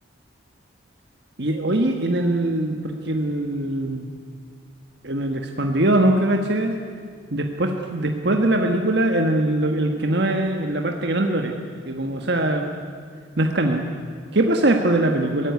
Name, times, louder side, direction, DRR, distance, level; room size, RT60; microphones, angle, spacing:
voice 1, 1.4-4.0 5.0-6.8 7.3-11.5 11.9-12.7 13.4-13.8 14.3-15.5, right 1 dB, 60° right, 3 dB, 1.6 m, -22 dB
23.0 x 17.0 x 9.5 m, 2.1 s
head